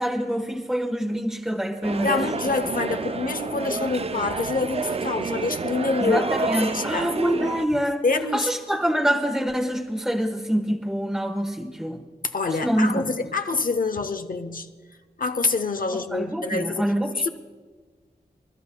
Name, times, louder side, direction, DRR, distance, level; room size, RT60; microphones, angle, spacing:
voice 1, 0.0-2.3 6.0-8.0 8.3-12.0 12.6-13.0 16.1-17.3, equal, 5° right, 2 dB, 1.1 m, -25 dB
sound 1, 1.8-7.7, right 4 dB, 40° right, 0.4 m, -29 dB
voice 2, 2.0-6.2 6.6-7.1 8.0-8.5 12.3-14.7 15.2-16.8 17.2-17.3, left 3 dB, 60° left, 8 dB, 0.7 m, -26 dB
27.5 x 12.0 x 2.3 m, 1.4 s
wide cardioid pair, 75°, 16 cm